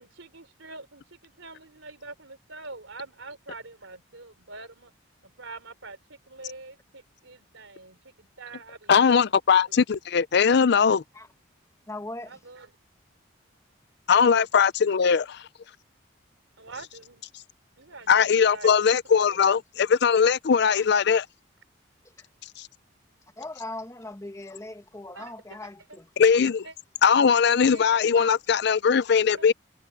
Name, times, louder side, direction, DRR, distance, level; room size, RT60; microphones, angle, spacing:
voice 1, 0.0-4.9 5.2-9.2 9.5-10.0 12.3-12.7 16.6-17.2 17.8-18.9 19.3-19.4 25.2-25.6 25.9-26.0 26.6-26.7 27.7-28.3 29.3-29.5, right 3 dB, 85° right, 3.7 m, -45 dB
voice 2, 8.9-11.0 14.1-15.4 18.1-21.3 26.2-26.6 27.0-29.5, left 6 dB, 60° left, 0.5 m, -20 dB
voice 3, 11.9-12.4 22.2-22.3 23.4-26.1, left 2 dB, 15° left, 1.1 m, -39 dB
head